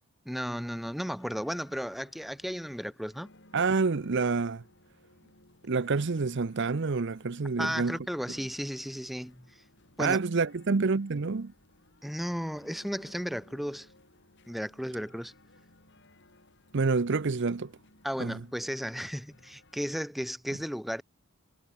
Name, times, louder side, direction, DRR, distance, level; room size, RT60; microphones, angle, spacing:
voice 1, 0.2-3.3 7.6-9.6 10.0-10.2 12.0-13.9 14.5-15.3 18.0-21.0, equal, ahead, 1.3 m, -34 dB
sound 1, 0.8-20.0, left 2 dB, 55° left, 5.7 m, -60 dB
voice 2, 3.5-4.6 5.6-8.0 10.0-11.5 16.7-17.7 18.2-18.4, right 4 dB, 55° right, 0.6 m, -28 dB
head